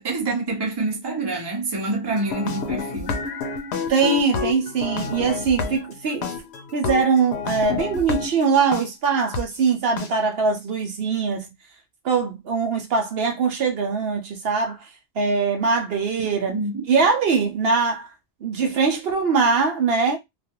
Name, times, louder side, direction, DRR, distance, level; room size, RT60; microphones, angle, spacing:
voice 1, 0.0-3.2 16.5-16.8, right 2 dB, 25° right, 0.7 m, -27 dB
sound 1, 2.1-8.8 9.3-9.4 10.0-10.1, left 5 dB, 80° left, 0.9 m, -29 dB
voice 2, 3.9-6.3 6.7-11.5 12.0-14.9 15.2-16.6 16.9-18.1 18.4-20.2, right 5 dB, 70° right, 0.8 m, -22 dB
2.4 x 2.3 x 2.8 m
omnidirectional pair, 1.1 m